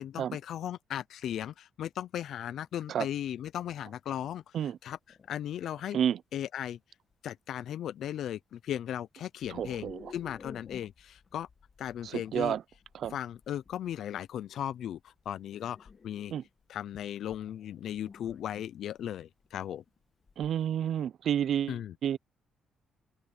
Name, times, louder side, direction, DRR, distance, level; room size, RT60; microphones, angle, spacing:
voice 1, 0.0-4.4 4.8-5.0 5.3-6.0 6.3-6.8 7.2-11.5 11.8-12.6 13.1-16.3 16.7-19.8 21.7-21.9, left 10 dB, 70° left, 0.6 m, -37 dB
sound 1, 2.6-2.7 3.2-3.4 4.1-4.2 5.1-5.8 7.1-7.2 7.6-7.9 9.4-20.7, left 5 dB, 40° left, 1.9 m, -54 dB
voice 2, 9.5-10.1 12.0-12.6 12.9-13.2 16.3-16.4 20.4-22.2, right 9 dB, 65° right, 0.7 m, -30 dB
cardioid pair, 90°, 0 cm